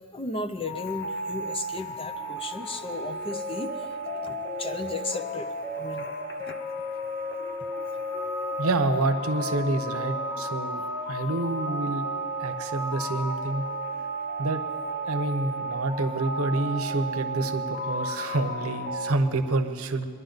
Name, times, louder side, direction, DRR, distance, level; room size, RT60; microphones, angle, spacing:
voice 1, 0.1-6.1 6.5-6.6, left 2 dB, 25° left, 8 dB, 0.6 m, -35 dB
sound 1, 0.7-19.1, equal, 50° left, 1.2 m, -33 dB
voice 2, 8.6-12.1 12.4-13.7 14.4-14.6 15.1-20.1, right 2 dB, 75° right, 8 dB, 0.8 m, -28 dB
21.5 x 11.0 x 4.0 m, 2.2 s
head